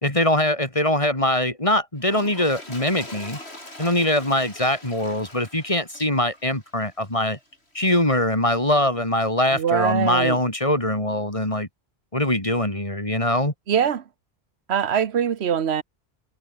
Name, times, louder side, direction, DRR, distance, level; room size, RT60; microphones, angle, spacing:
voice 1, 0.0-3.4 3.8-7.4 7.7-11.7 12.1-13.5, left 1 dB, 30° left, 4.4 m, -22 dB
Toilet flush, 2.0-7.5 8.1-8.3, left 1 dB, 80° left, 7.6 m, -42 dB
voice 2, 9.5-10.4 13.7-14.0 14.7-15.8, right 8 dB, 80° right, 1.3 m, -22 dB
omnidirectional pair, 1.1 m